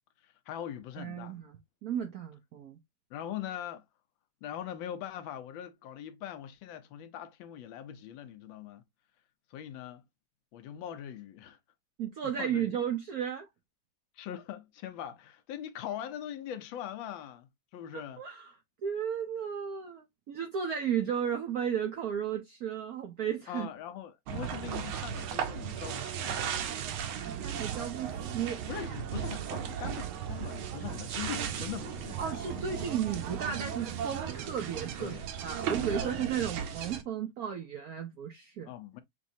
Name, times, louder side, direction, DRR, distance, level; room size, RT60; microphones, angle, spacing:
voice 1, 0.2-1.4 3.1-3.9 4.4-8.8 9.5-10.1 10.5-11.6 12.2-12.8 14.1-18.2 23.5-26.7 28.7-32.9 35.0-35.2 35.6-36.3 38.7-39.0, left 10 dB, 75° left, 1.3 m, -42 dB
voice 2, 1.0-1.5 1.8-2.8 12.0-13.5 17.9-18.5 18.8-23.7 27.1-28.6 32.2-35.1 35.4-38.7, right 8 dB, 70° right, 0.8 m, -34 dB
sound 1, 24.3-37.0, right 8 dB, 90° right, 1.5 m, -36 dB
6.1 x 2.4 x 2.6 m
omnidirectional pair, 2.2 m